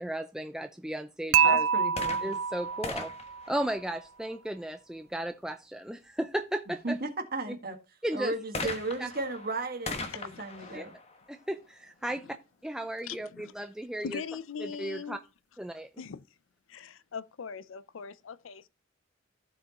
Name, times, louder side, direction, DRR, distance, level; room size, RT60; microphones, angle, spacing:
voice 1, 0.0-1.7 2.2-3.1 3.5-7.0 8.0-8.3 9.0-9.1 10.7-10.8 11.3-12.2 12.6-14.2 14.8-15.2 15.6-15.9, right 1 dB, 5° right, 0.4 m, -35 dB
Dishes pots and pans / Chink clink, 1.3-3.5, right 7 dB, 75° right, 0.4 m, -26 dB
voice 2, 1.4-2.2 6.8-7.8 8.1-10.9, right 2 dB, 45° right, 1.7 m, -35 dB
sound 1, 1.9-4.5 8.5-12.2 13.0-13.1, left 3 dB, 30° left, 1.2 m, -41 dB
voice 3, 10.1-10.8 12.1-12.4 13.0-13.5 14.0-15.2 16.0-16.2 16.7-18.7, left 6 dB, 75° left, 0.5 m, -41 dB
14.5 x 4.9 x 2.9 m
head